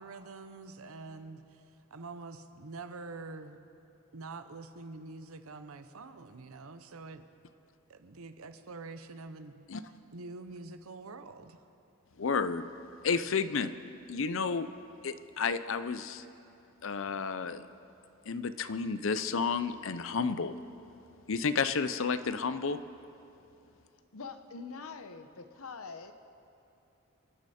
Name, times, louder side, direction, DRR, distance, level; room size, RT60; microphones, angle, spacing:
voice 1, 0.0-1.6 1.9-3.6 4.1-7.2 7.9-9.6 10.1-11.6, right 3 dB, 85° right, 9 dB, 0.8 m, -46 dB
voice 2, 12.2-12.7 13.0-13.7 14.1-14.7 15.0-16.2 16.8-17.6 18.3-20.5 21.3-22.8, left 5 dB, 65° left, 12 dB, 0.6 m, -31 dB
voice 3, 24.1-26.1, left 4 dB, 85° left, 9 dB, 0.9 m, -44 dB
27.5 x 9.8 x 4.3 m, 2.8 s
head